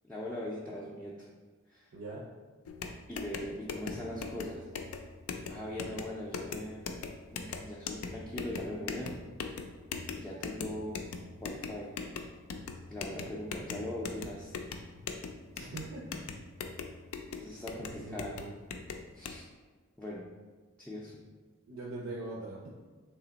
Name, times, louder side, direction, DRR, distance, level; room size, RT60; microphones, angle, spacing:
voice 1, 0.0-1.3 1.7-1.9 3.1-4.7 5.5-6.9 7.3-9.2 10.2-11.0 11.4-11.9 12.9-14.6 17.4-18.4 19.1-19.5 20.0-20.3 20.8-21.1, left 1 dB, 5° left, -5 dB, 0.3 m, -40 dB
voice 2, 1.9-2.2 15.6-16.3 17.7-18.6 21.7-22.6, right 2 dB, 70° right, -4 dB, 0.6 m, -42 dB
sound 1, 2.7-19.4, left 5 dB, 85° left, 0.4 m, -41 dB
3.3 x 2.8 x 3.9 m, 1.4 s
head